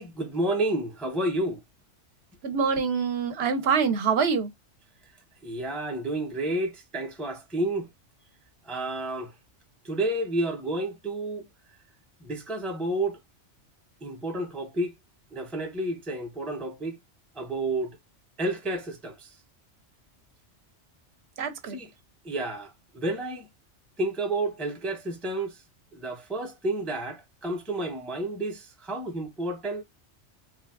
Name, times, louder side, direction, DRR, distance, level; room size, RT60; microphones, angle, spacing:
voice 1, 0.0-1.6 5.4-7.9 8.6-9.3 9.8-11.4 12.2-13.2 14.0-15.0 15.3-17.0 17.4-18.0 18.4-19.4 21.7-21.9 22.2-23.5 24.0-25.6 25.9-29.8, right 1 dB, ahead, 0.4 m, -30 dB
voice 2, 2.4-4.5 21.4-21.8, right 6 dB, 65° right, 0.9 m, -25 dB
3.3 x 2.3 x 2.3 m
omnidirectional pair, 1.2 m